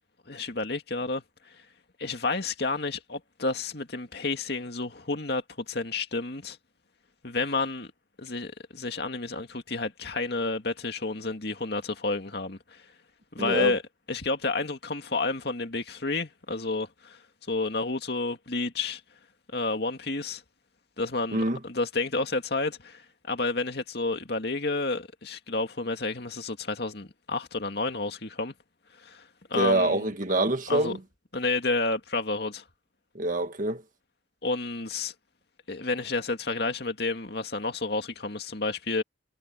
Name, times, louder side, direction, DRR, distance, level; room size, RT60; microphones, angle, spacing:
voice 1, 0.3-1.2 2.0-6.6 7.2-7.9 8.2-12.8 13.3-13.8 14.1-17.2 17.5-19.0 19.5-20.4 21.0-28.5 29.0-29.2 29.5-30.1 30.7-30.9 31.3-32.6 34.4-35.1 35.7-39.0, left 3 dB, 65° left, 2.3 m, -30 dB
voice 2, 13.4-13.7 21.3-21.6 29.5-31.0 33.2-33.8, right 2 dB, 50° right, 1.7 m, -25 dB
head